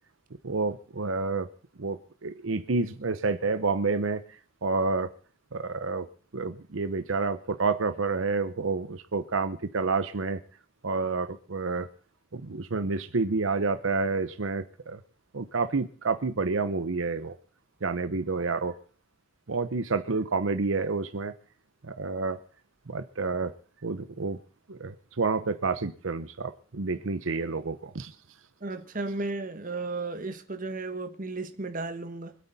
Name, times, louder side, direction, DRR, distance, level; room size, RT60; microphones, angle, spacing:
voice 1, 0.4-1.5 1.8-4.2 4.6-5.1 5.5-6.1 6.3-10.4 10.8-11.9 12.3-15.0 15.3-17.3 17.8-18.7 19.5-21.3 21.8-22.4 22.9-23.5 23.8-24.4 24.7-28.1, right 4 dB, 85° right, 0.8 m, -29 dB
voice 2, 28.6-32.4, right 3 dB, 45° right, 1.4 m, -34 dB
25.0 x 8.6 x 4.1 m
head